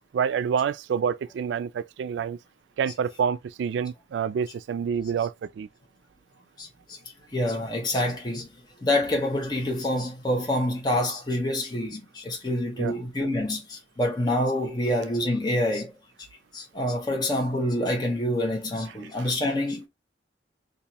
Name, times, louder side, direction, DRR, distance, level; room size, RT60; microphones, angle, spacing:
voice 1, 0.1-2.4 2.8-5.7 12.8-12.9 19.2-19.3, right 7 dB, 90° right, 0.3 m, -27 dB
voice 2, 6.6-7.0 7.3-8.5 8.8-15.9 16.5-19.9, left 1 dB, 25° left, 0.9 m, -27 dB
2.9 x 2.5 x 4.0 m
head